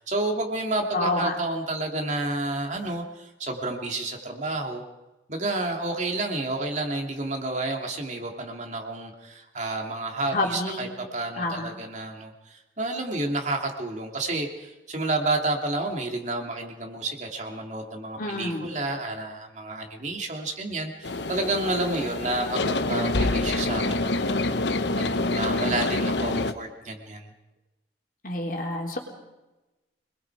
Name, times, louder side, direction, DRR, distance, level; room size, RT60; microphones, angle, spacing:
voice 1, 0.0-4.8 5.3-10.9 11.1-24.6 24.9-27.3, right 2 dB, 40° right, 2 dB, 2.8 m, -30 dB
voice 2, 0.9-1.3 10.3-10.9 11.4-11.7 18.2-18.7 28.2-29.0, left 2 dB, 50° left, 1 dB, 3.8 m, -28 dB
sound 1, 21.0-26.5, left 2 dB, 70° left, 1.0 m, -26 dB
26.0 x 21.5 x 4.9 m, 1.0 s
head